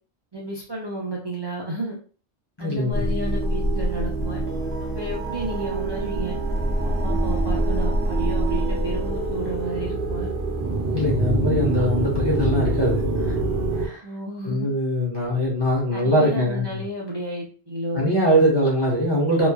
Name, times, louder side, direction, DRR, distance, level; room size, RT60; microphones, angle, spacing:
voice 1, 0.3-2.0 2.6-4.4 4.8-6.4 6.8-10.3 14.0-14.7 15.9-18.1, right 1 dB, 35° right, -4 dB, 0.4 m, -32 dB
voice 2, 2.6-3.1 10.9-13.3 13.8-14.0 14.4-16.8 17.9-19.5, equal, 30° left, -4 dB, 0.6 m, -22 dB
sound 1, 2.9-13.9, right 2 dB, 65° right, 0.8 m, -25 dB
3.0 x 2.3 x 2.2 m, 0.40 s
omnidirectional pair, 1.1 m